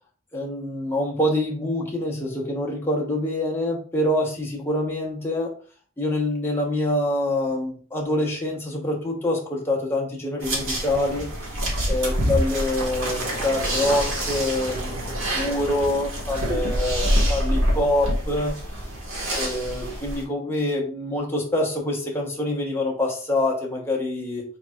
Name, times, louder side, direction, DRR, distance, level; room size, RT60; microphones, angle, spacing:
voice 1, 0.3-5.5 6.0-11.3 11.9-18.5 19.3-24.4, left 1 dB, 10° left, -1 dB, 1.1 m, -25 dB
sound 1, 10.4-20.2, equal, 75° right, 1.8 m, -26 dB
4.8 x 4.1 x 2.4 m, 0.41 s
head